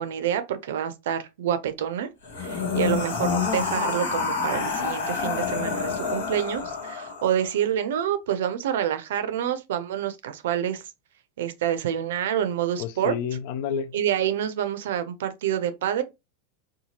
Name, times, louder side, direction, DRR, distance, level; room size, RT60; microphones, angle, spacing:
voice 1, 0.0-2.1 2.4-10.8 11.4-13.1 13.9-16.0, right 10 dB, 75° right, 0.4 m, -27 dB
sound 1, 2.2-7.5, left 5 dB, 85° left, 1.0 m, -28 dB
voice 2, 12.8-14.0, left 7 dB, 60° left, 0.3 m, -30 dB
2.8 x 2.3 x 2.8 m
hypercardioid pair, 100°, 0 cm